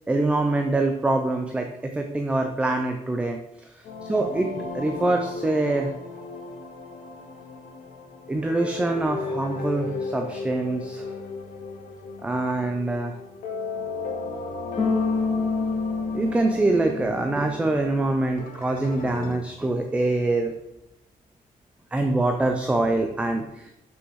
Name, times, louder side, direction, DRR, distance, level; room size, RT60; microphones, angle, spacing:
voice 1, 0.1-3.4 4.1-5.9 8.3-11.1 12.2-13.1 16.1-20.5 21.9-23.4, right 2 dB, 10° right, 4 dB, 0.5 m, -24 dB
sound 1, 3.8-19.3, left 3 dB, 70° left, 1.9 m, -36 dB
Bass guitar, 14.8-17.9, left 4 dB, 20° left, 1.9 m, -27 dB
6.5 x 6.2 x 6.3 m, 0.92 s
cardioid pair, 180°, 14 cm